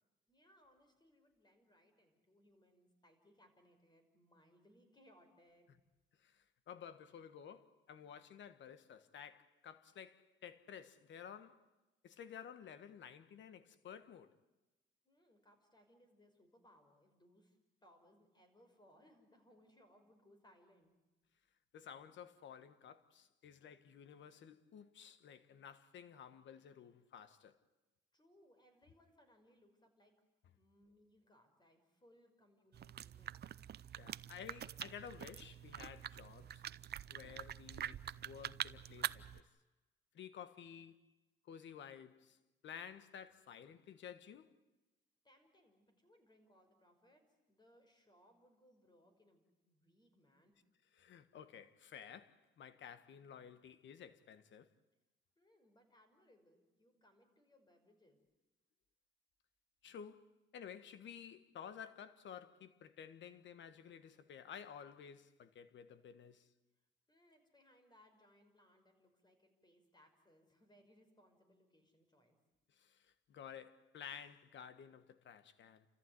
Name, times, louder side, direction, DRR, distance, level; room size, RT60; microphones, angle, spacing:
voice 1, 0.3-5.7 15.0-20.9 28.1-30.1 30.6-33.4 45.2-50.5 55.4-58.2 67.1-72.4, equal, 20° left, 5.6 m, -69 dB
voice 2, 6.2-11.7 12.0-14.4 21.7-27.6 34.0-36.6 37.1-39.4 40.1-41.0 41.4-42.4 42.6-44.6 51.0-54.7 59.8-66.5 72.7-75.9, left 8 dB, 70° left, 1.5 m, -53 dB
sound 1, 32.7-39.4, right 10 dB, 55° right, 0.7 m, -46 dB
30.0 x 14.5 x 9.5 m
cardioid pair, 90°, 20 cm